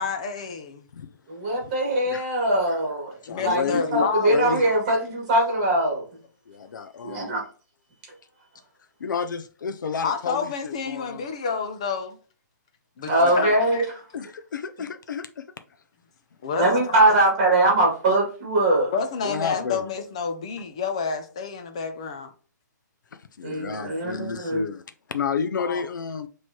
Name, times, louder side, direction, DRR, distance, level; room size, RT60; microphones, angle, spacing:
voice 1, 0.0-0.9 3.3-4.6 10.0-12.2 13.0-13.9 16.4-17.2 18.9-22.3 25.6-25.8, left 5 dB, 20° left, 0.3 m, -29 dB
voice 2, 1.3-3.1 3.4-6.0 7.0-7.4 13.1-13.8 16.6-18.9 23.4-24.7, right 1 dB, 25° right, 2.0 m, -22 dB
voice 3, 2.0-2.4 3.2-4.7 6.5-7.4 9.0-11.2 13.2-13.4 14.1-15.4 19.2-19.8 23.1-24.8 25.1-26.3, left 6 dB, 80° left, 0.5 m, -31 dB
6.1 x 3.1 x 2.8 m
hypercardioid pair, 175°, 10 cm